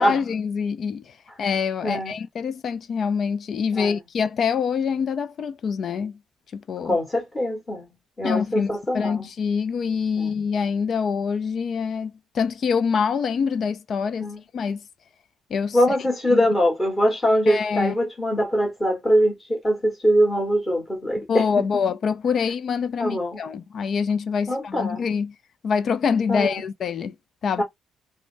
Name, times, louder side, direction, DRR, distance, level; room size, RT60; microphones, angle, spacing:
voice 1, 0.0-6.1 6.5-7.0 8.2-14.8 15.5-15.8 16.3-16.4 17.5-17.9 21.2-25.3 25.6-27.1 27.4-27.6, left 6 dB, 50° left, 0.4 m, -25 dB
voice 2, 6.8-7.9 8.2-9.3 10.2-10.3 14.2-14.4 15.7-21.4 23.0-23.4 24.5-25.0 26.3-26.6 27.6-27.7, equal, 15° left, 1.5 m, -22 dB
3.2 x 2.1 x 2.6 m
cardioid pair, 115°, 0 cm